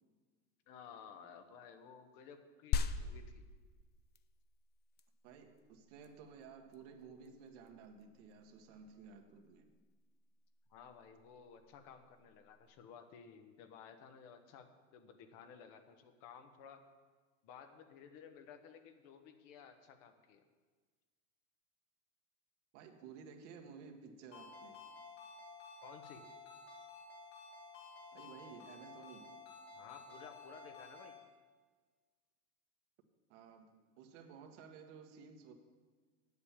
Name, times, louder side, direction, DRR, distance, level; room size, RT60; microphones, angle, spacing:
voice 1, 0.7-3.5 10.7-16.8 17.4-20.4 25.8-26.2 29.7-31.1, left 7 dB, 55° left, 7 dB, 1.3 m, -55 dB
sound 1, 2.7-12.7, left 5 dB, 25° left, 0.5 m, -44 dB
voice 2, 5.2-9.7 22.7-24.8 28.1-29.3 33.3-35.5, right 6 dB, 70° right, 4 dB, 1.6 m, -55 dB
Ringtone, 24.3-31.2, left 3 dB, 80° left, 3.9 m, -53 dB
8.7 x 8.2 x 7.3 m, 1.5 s
supercardioid pair, 120°, 39 cm